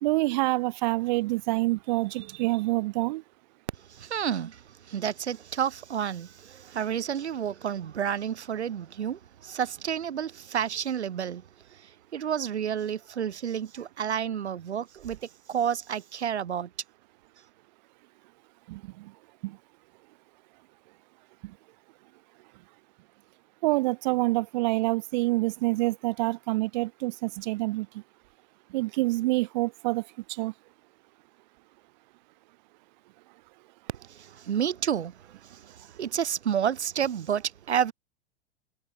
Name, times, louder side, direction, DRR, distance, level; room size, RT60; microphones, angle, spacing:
voice 1, 0.0-3.2 18.7-19.1 19.4-19.6 21.4-21.5 23.6-28.0 28.7-30.5, right 21 dB, 40° right, 0.6 m, -27 dB
voice 2, 4.0-4.6 4.9-11.4 12.1-15.2 15.5-16.7 34.1-35.1 36.0-37.9, right 8 dB, 70° right, 0.9 m, -30 dB
figure-of-eight pair, 95°, 34 cm